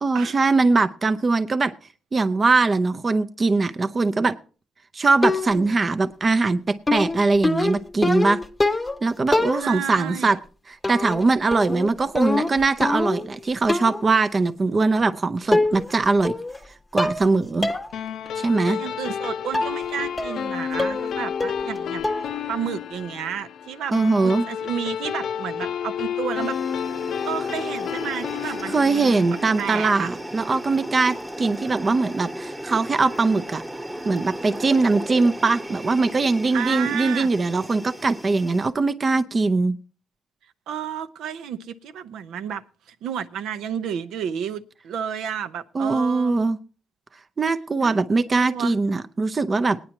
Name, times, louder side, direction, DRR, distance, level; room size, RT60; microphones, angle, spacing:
voice 1, 0.0-1.7 2.1-4.4 4.9-8.4 9.0-10.4 10.7-16.4 16.9-17.7 18.4-18.8 23.9-24.4 28.7-33.6 34.0-39.8 45.7-46.6 47.4-49.8, right 3 dB, 35° right, 0.6 m, -21 dB
sound 1, 5.2-5.8 6.9-9.0 9.3-10.0 10.8-11.2 11.5-13.3 13.7-14.1 15.0-15.1 15.5-16.0 16.2-16.6 17.0-17.3 17.6-17.9 18.3-18.4 19.5-19.8 20.2-20.5 20.8-21.1 21.4-21.8 22.0-22.4, left 2 dB, 15° left, 0.8 m, -24 dB
voice 2, 9.5-10.3 18.7-22.1 22.5-26.6 27.2-29.2 29.6-30.1 36.5-37.3 40.7-46.4 47.8-48.0 48.4-48.7, right 8 dB, 80° right, 0.7 m, -31 dB
sound 2, 17.9-30.7, left 8 dB, 70° left, 0.5 m, -31 dB
sound 3, 26.4-38.7, right 1 dB, 10° right, 1.2 m, -35 dB
20.0 x 9.6 x 2.9 m
cardioid pair, 90°, 0 cm